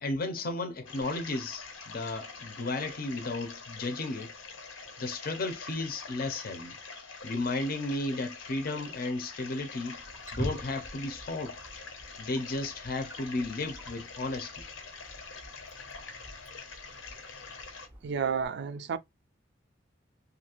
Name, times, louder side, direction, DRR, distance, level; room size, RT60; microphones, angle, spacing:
voice 1, 0.0-4.3 5.0-6.8 7.2-10.0 10.3-11.6 12.2-14.6, left 2 dB, 50° left, 0.6 m, -34 dB
sound 1, 0.9-17.9, left 4 dB, 85° left, 0.7 m, -45 dB
Wild animals, 9.9-18.5, equal, 10° right, 0.5 m, -45 dB
voice 2, 18.0-19.0, right 6 dB, 60° right, 0.3 m, -31 dB
2.7 x 2.4 x 2.9 m
head